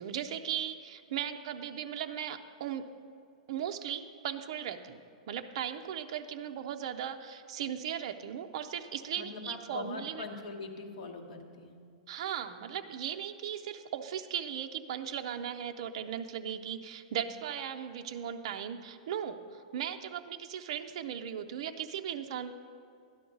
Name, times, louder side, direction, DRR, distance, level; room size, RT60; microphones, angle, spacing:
voice 1, 0.0-2.9 3.5-5.0 5.3-10.2 12.1-22.5, right 9 dB, 45° right, 5 dB, 0.5 m, -37 dB
voice 2, 9.2-11.8, left 3 dB, 55° left, 3 dB, 1.4 m, -42 dB
12.0 x 11.0 x 3.9 m, 2.4 s
supercardioid pair, 170°, 4 cm